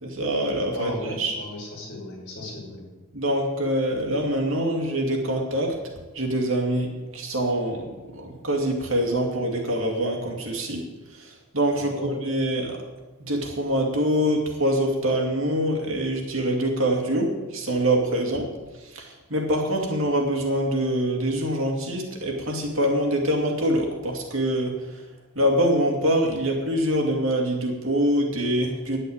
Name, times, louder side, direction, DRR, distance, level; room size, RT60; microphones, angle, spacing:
voice 1, 0.0-1.4 3.1-5.8 6.1-12.8 13.3-25.1 25.3-29.0, right 1 dB, 65° right, 1 dB, 2.5 m, -25 dB
voice 2, 0.7-2.8 11.7-12.1, left 1 dB, 55° left, -3 dB, 5.7 m, -36 dB
10.5 x 8.3 x 8.8 m, 1.2 s
head